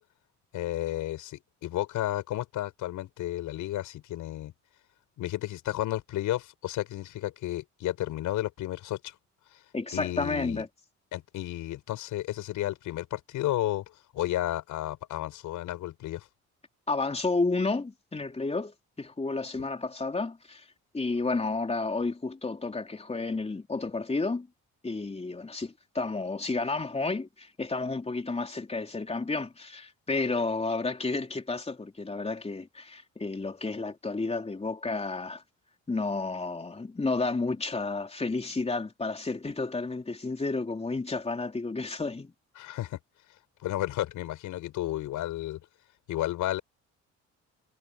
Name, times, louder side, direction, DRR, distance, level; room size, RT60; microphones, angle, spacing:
voice 1, 0.5-4.5 5.2-9.1 9.9-10.6 11.1-16.3 42.6-43.0 43.6-45.6 46.1-46.6, left 14 dB, 85° left, 6.7 m, -32 dB
voice 2, 9.7-10.7 16.9-20.7 20.9-24.5 24.8-35.4 35.9-42.3, left 3 dB, 20° left, 3.5 m, -31 dB
cardioid pair, 90°, 30 cm